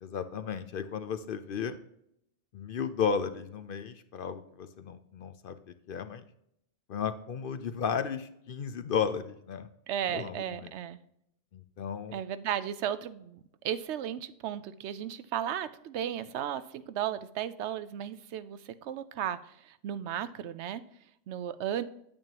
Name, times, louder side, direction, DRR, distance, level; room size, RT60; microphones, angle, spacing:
voice 1, 0.0-1.8 2.5-5.6 5.9-6.2 6.9-9.7 10.1-10.7 11.5-12.2, left 6 dB, 60° left, 11 dB, 0.7 m, -34 dB
voice 2, 9.9-11.0 12.1-13.4 13.6-20.8 21.3-21.8, right 10 dB, 75° right, 13 dB, 0.8 m, -35 dB
8.9 x 8.9 x 2.9 m, 0.75 s
omnidirectional pair, 1.2 m